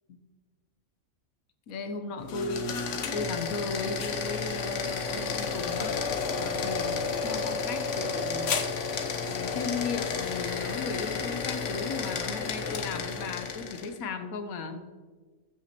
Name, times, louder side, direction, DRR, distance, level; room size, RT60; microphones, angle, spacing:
voice 1, 1.7-6.0 6.3-8.5 9.3-14.8, left 4 dB, 85° left, 7 dB, 1.2 m, -36 dB
sound 1, 2.2-14.0, left 5 dB, 65° left, 1.1 m, -31 dB
14.5 x 5.9 x 2.9 m, 1.4 s
omnidirectional pair, 1.4 m